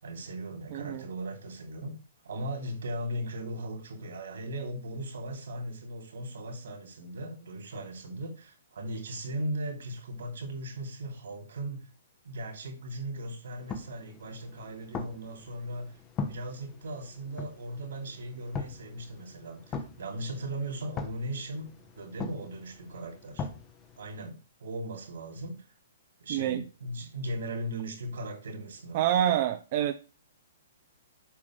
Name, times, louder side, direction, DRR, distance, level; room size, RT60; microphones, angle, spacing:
voice 1, 0.0-2.0 2.2-11.9 12.2-15.9 16.3-21.7 21.9-23.5 24.0-25.6 26.2-29.0, right 1 dB, 75° right, 4 dB, 2.7 m, -38 dB
voice 2, 0.7-1.0 26.3-26.6 28.9-29.9, right 11 dB, 45° right, 8 dB, 0.5 m, -27 dB
sound 1, 13.6-24.3, left 5 dB, 25° left, 0.8 m, -41 dB
7.4 x 4.9 x 3.1 m, 0.34 s
hypercardioid pair, 140°, 0 cm